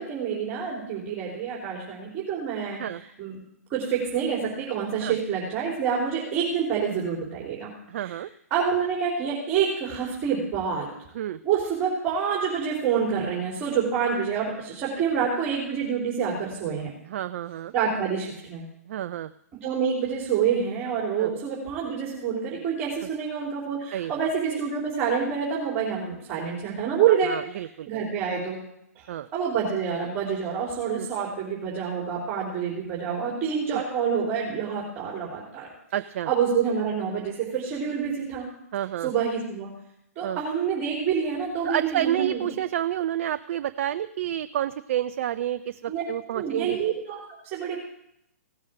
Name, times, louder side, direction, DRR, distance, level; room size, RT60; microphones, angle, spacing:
voice 1, 0.0-2.8 3.2-3.4 3.7-7.7 8.0-8.1 8.5-10.9 11.4-16.9 17.7-18.6 19.6-27.3 27.9-28.6 29.0-29.1 29.3-35.7 36.3-38.5 39.0-39.7 40.2-42.4 45.9-46.0 46.3-47.8, right 7 dB, 30° right, -3 dB, 3.7 m, -27 dB
voice 2, 7.9-8.3 11.1-11.4 17.1-17.7 18.9-19.3 21.2-21.3 23.9-24.1 27.2-28.0 29.1-29.3 31.0-31.1 33.7-33.8 35.9-36.3 38.7-39.1 40.2-40.4 41.6-46.8, right 11 dB, 50° right, 12 dB, 0.4 m, -29 dB
16.5 x 7.3 x 6.5 m, 0.77 s
figure-of-eight pair, 125°, 9 cm